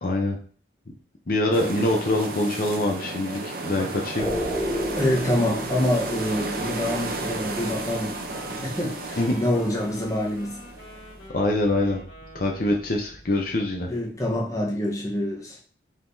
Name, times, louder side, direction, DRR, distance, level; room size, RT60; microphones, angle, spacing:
voice 1, 0.0-0.4 1.3-4.3 9.2-9.3 11.3-12.0 12.3-13.9, left 1 dB, 50° left, 0.7 m, -24 dB
sound 1, 1.5-11.3, right 2 dB, 50° right, 0.7 m, -33 dB
sound 2, 4.2-14.4, equal, 5° right, 1.1 m, -37 dB
voice 2, 4.9-8.2 8.5-10.6 13.9-15.6, left 1 dB, 20° left, 1.0 m, -26 dB
Wind instrument woodwind instrument, 6.1-13.2, left 1 dB, 80° left, 1.9 m, -46 dB
5.0 x 3.7 x 2.7 m
head